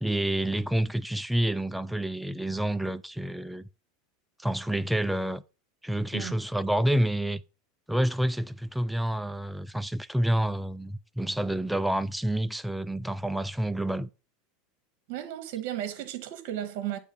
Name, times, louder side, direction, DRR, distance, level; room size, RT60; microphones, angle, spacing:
voice 1, 0.0-3.6 4.4-5.4 5.8-7.4 7.9-14.1, right 1 dB, 5° right, 0.4 m, -28 dB
voice 2, 15.1-17.0, right 12 dB, 60° right, 1.0 m, -34 dB
8.2 x 3.4 x 4.2 m
hypercardioid pair, 105°, 0 cm